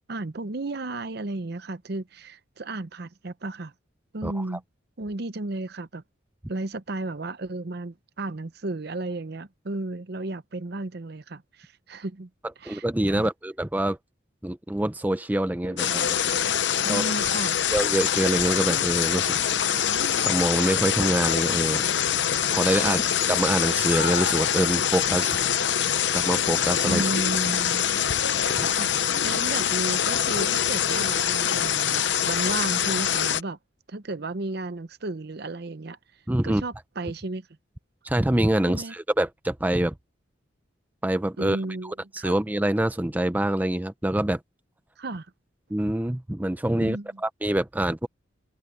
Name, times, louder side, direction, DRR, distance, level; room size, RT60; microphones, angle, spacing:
voice 1, 0.1-3.7 4.1-4.6 5.0-6.0 6.5-12.3 12.6-13.3 16.8-17.6 22.8-23.0 26.8-27.8 28.7-33.6 33.9-36.0 36.4-37.5 38.7-38.9 41.4-42.3 45.0-45.3 46.8-47.2, right 2 dB, 55° right, 0.8 m, -33 dB
voice 2, 12.7-14.0 14.4-16.2 16.9-17.0 17.7-19.3 20.2-21.8 22.5-23.0 23.3-25.4 26.1-27.1 28.4-28.7 36.3-36.6 38.0-39.9 41.0-41.6 41.8-44.4 45.7-48.1, right 1 dB, 10° right, 0.5 m, -25 dB
Drum, 15.6-17.8, right 1 dB, 35° right, 3.0 m, -49 dB
sound 1, 15.8-33.4, left 9 dB, 65° left, 0.8 m, -24 dB
head